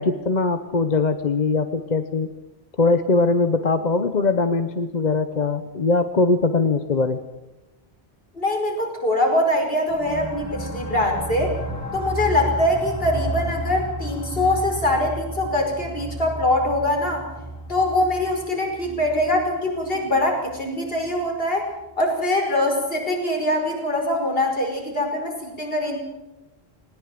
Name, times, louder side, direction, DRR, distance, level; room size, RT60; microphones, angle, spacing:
voice 1, 0.0-2.3 2.8-7.2, left 3 dB, 45° left, 9 dB, 1.0 m, -21 dB
voice 2, 8.3-11.6 11.9-17.3 17.7-21.7 22.0-26.0, left 1 dB, 60° left, 1 dB, 5.5 m, -23 dB
sound 1, 9.9-21.2, right 1 dB, 15° right, 1.8 m, -33 dB
20.0 x 19.0 x 7.7 m, 1.0 s
omnidirectional pair, 1.1 m